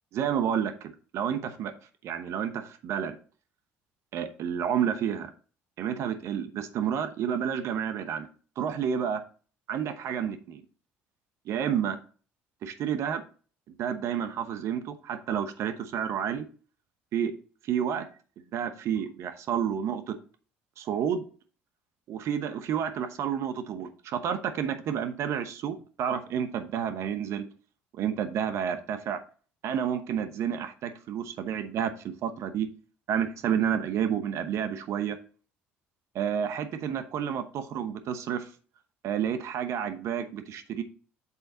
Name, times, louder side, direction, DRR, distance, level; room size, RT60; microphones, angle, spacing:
voice 1, 0.1-1.7 2.0-3.2 4.1-5.3 5.8-8.3 8.6-9.2 9.7-10.6 11.5-12.0 12.6-13.2 13.8-16.5 17.1-17.3 17.7-18.1 18.5-20.2 20.8-21.2 22.1-27.5 28.0-29.2 29.6-32.7 33.1-35.2 36.1-38.5 39.0-40.8, right 8 dB, 65° right, 9 dB, 1.0 m, -30 dB
8.4 x 4.0 x 3.9 m, 0.39 s
supercardioid pair, 70°, 5 cm